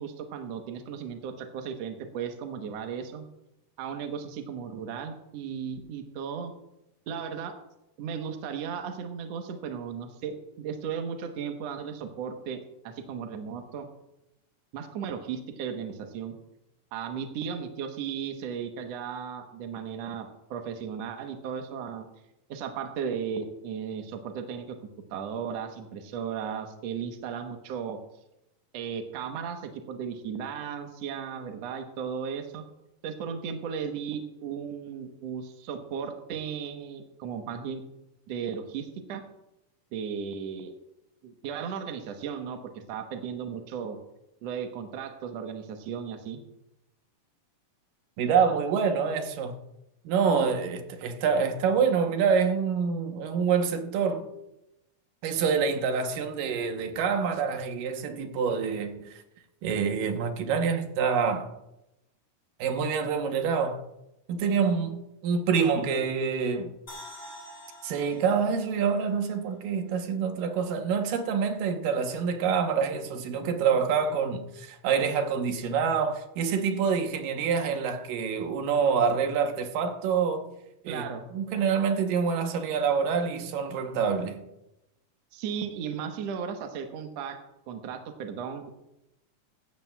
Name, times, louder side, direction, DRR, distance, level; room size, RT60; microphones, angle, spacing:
voice 1, 0.0-3.3 3.8-6.5 7.1-7.5 8.0-13.9 14.7-16.3 16.9-22.1 22.5-24.7 25.1-28.0 28.7-32.6 33.0-37.8 38.3-39.2 39.9-40.7 41.2-42.6 42.9-44.0 44.4-46.4 80.9-81.2 85.3-87.4 87.7-88.7, right 7 dB, 65° right, 1.9 m, -35 dB
voice 2, 48.2-49.6 50.1-54.3 55.2-59.1 59.6-61.5 62.6-63.8 64.3-66.7 67.8-80.5 80.8-84.4, right 6 dB, 85° right, 2.7 m, -26 dB
sound 1, 66.9-70.1 70.4-70.5, left 1 dB, 15° left, 2.7 m, -48 dB
16.0 x 12.0 x 2.3 m
omnidirectional pair, 3.8 m